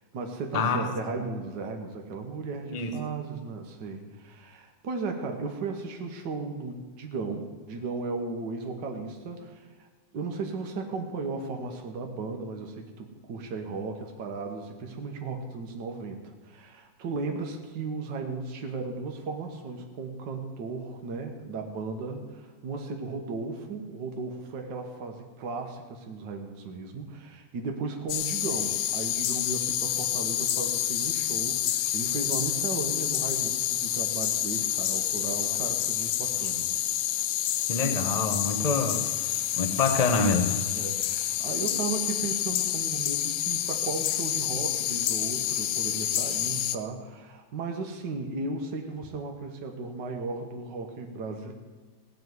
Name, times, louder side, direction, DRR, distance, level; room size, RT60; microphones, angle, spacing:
voice 1, 0.0-9.9 10.1-36.7 40.7-51.5, right 4 dB, 70° right, 3 dB, 1.9 m, -35 dB
voice 2, 0.5-0.8 2.7-2.9 37.7-39.0 39.6-40.6, left 4 dB, 25° left, 7 dB, 0.9 m, -26 dB
sound 1, 28.1-46.8, left 12 dB, 90° left, 1.4 m, -28 dB
17.0 x 5.9 x 9.4 m, 1.4 s
omnidirectional pair, 2.0 m